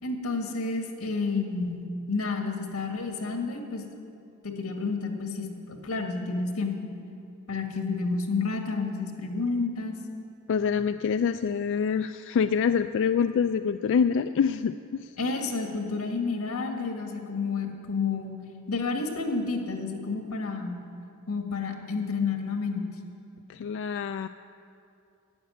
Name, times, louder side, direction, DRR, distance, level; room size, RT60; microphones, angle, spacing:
voice 1, 0.0-3.8 4.4-5.5 5.8-6.8 7.5-9.9 15.2-18.3 18.7-20.8 21.3-22.9, left 4 dB, 90° left, 3 dB, 1.7 m, -30 dB
voice 2, 10.5-15.1 23.5-24.3, left 6 dB, 60° left, 9 dB, 0.3 m, -26 dB
11.5 x 8.1 x 9.6 m, 2.6 s
head